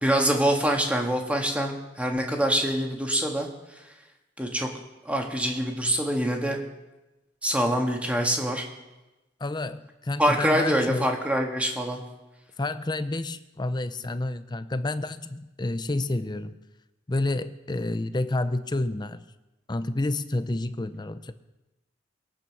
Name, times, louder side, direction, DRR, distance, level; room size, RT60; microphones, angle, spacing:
voice 1, 0.0-3.5 4.4-4.7 5.1-6.6 7.4-8.6 10.2-12.0, equal, 5° right, 1 dB, 1.8 m, -25 dB
voice 2, 9.4-11.1 12.6-16.6 17.1-19.2 19.7-21.3, left 2 dB, 25° left, 12 dB, 0.6 m, -29 dB
21.5 x 8.7 x 6.1 m, 1.0 s
head